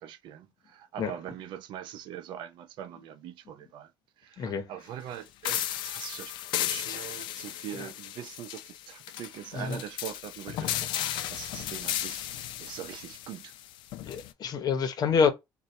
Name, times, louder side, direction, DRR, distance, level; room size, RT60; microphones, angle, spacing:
voice 1, 0.0-3.9 4.2-13.5, right 10 dB, 70° right, 0.6 m, -42 dB
voice 2, 4.4-4.7 6.8-7.0 9.5-9.8 14.1-15.3, left 6 dB, 55° left, 0.8 m, -27 dB
sound 1, 5.4-14.3, left 12 dB, 75° left, 0.4 m, -35 dB
4.0 x 2.3 x 3.2 m
cardioid pair, 100°, 8 cm